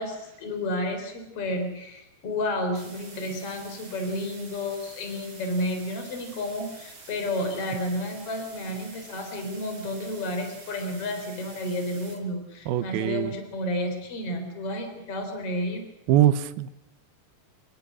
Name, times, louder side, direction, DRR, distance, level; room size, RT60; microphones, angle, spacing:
voice 1, 0.0-15.8, left 1 dB, 40° left, 6 dB, 4.7 m, -31 dB
sound 1, 2.7-12.2, right 3 dB, 45° right, 6.2 m, -47 dB
voice 2, 12.7-13.3 16.1-16.7, right 12 dB, 80° right, 14 dB, 2.9 m, -22 dB
27.5 x 22.0 x 6.2 m, 0.90 s
omnidirectional pair, 4.3 m